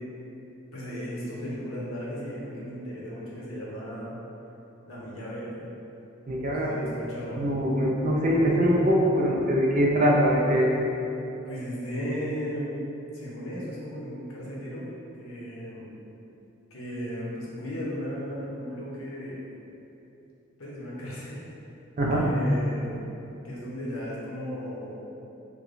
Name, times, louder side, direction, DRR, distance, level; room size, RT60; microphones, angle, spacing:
voice 1, 0.7-4.2 4.9-5.6 6.5-7.4 11.5-12.7 13.1-14.9 15.2-15.9 16.7-19.4 20.6-21.5 22.1-23.0 23.4-25.0, equal, 80° left, -6 dB, 0.8 m, -35 dB
voice 2, 6.3-6.7 7.4-10.7 22.0-22.2, equal, 35° right, -2 dB, 0.4 m, -23 dB
4.6 x 2.2 x 2.5 m, 2.9 s
head